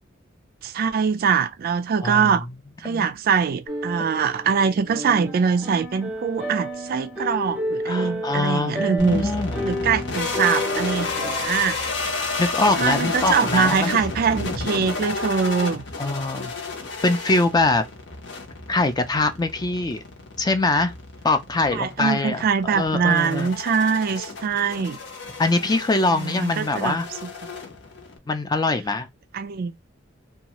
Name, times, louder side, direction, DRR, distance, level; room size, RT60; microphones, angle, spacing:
voice 1, 0.6-2.5 2.8-9.3 9.6-11.8 12.8-15.8 21.7-25.0 26.1-27.0 29.3-29.7, right 6 dB, 50° right, 0.3 m, -23 dB
voice 2, 2.0-2.3 2.8-3.1 7.8-9.7 12.4-14.0 16.0-16.5 17.0-17.8 18.7-20.0 20.4-20.9 21.2-22.5 22.7-23.5 25.4-27.1 28.3-29.1, left 2 dB, 20° left, 0.4 m, -23 dB
sound 1, 3.7-11.5, equal, 5° right, 0.9 m, -31 dB
sound 2, 9.0-28.2, left 3 dB, 65° left, 0.9 m, -31 dB
2.7 x 2.3 x 2.9 m
head